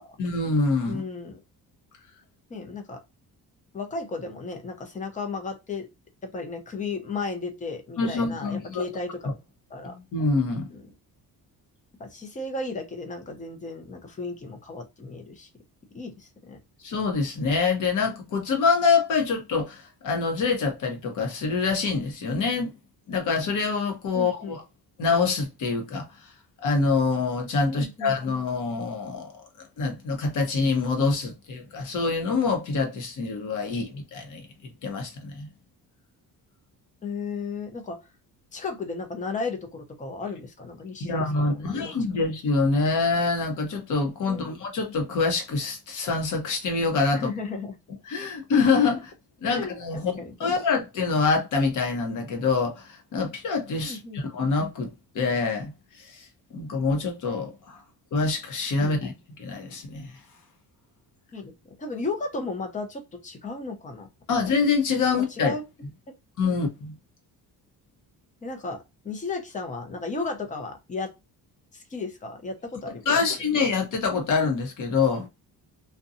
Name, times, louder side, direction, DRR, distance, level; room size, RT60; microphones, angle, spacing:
voice 1, 0.2-1.0 8.0-8.8 10.1-10.7 16.8-22.7 23.1-24.6 25.0-26.1 26.6-29.3 29.8-34.5 34.8-35.5 41.0-47.3 48.0-49.1 49.4-57.8 58.1-59.1 59.4-60.1 64.3-65.5 66.4-66.9 73.1-75.3, left 4 dB, 55° left, 0.9 m, -25 dB
voice 2, 0.9-1.4 2.5-3.0 3.7-5.9 6.3-9.4 9.7-10.0 10.7-10.8 12.0-15.5 15.9-16.6 24.1-24.6 27.7-28.1 37.0-38.0 38.5-41.9 44.3-44.5 47.1-47.8 49.5-50.5 53.8-54.2 58.8-59.0 61.3-61.5 61.8-64.1 65.4-65.6 68.4-71.1 71.7-73.3, left 3 dB, 20° left, 0.6 m, -34 dB
2.7 x 2.2 x 2.5 m
cardioid pair, 145°, 37 cm